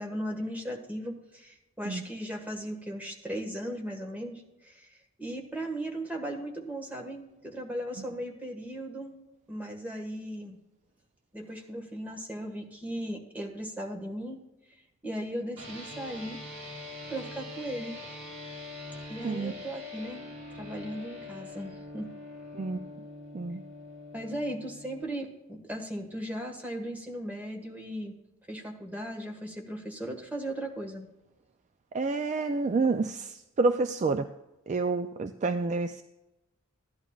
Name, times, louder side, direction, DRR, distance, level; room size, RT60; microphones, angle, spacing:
voice 1, 0.0-9.2 9.5-10.6 11.3-14.4 15.0-16.4 17.1-18.0 19.1-20.3 20.5-22.1 24.1-28.1 28.5-31.1, right 1 dB, 10° right, 1 dB, 1.5 m, -37 dB
sound 1, 15.6-25.0, left 2 dB, 75° right, 3.5 m, -43 dB
voice 2, 31.9-34.3 34.7-36.0, right 3 dB, 35° right, 8 dB, 0.3 m, -28 dB
15.5 x 11.0 x 2.4 m, 0.96 s
head